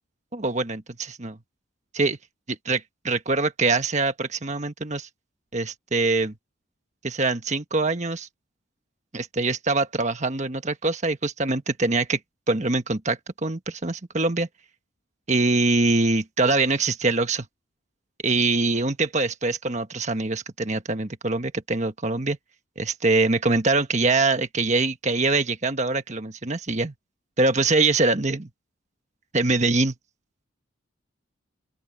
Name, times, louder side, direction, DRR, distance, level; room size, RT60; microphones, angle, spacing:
voice 1, 0.3-1.4 1.9-2.2 2.5-5.1 5.5-6.4 7.0-8.3 9.1-12.2 12.5-14.5 15.3-17.5 18.2-22.4 22.8-26.9 27.4-28.5 29.3-29.9, right 3 dB, 35° right, 1.4 m, -24 dB
open air
head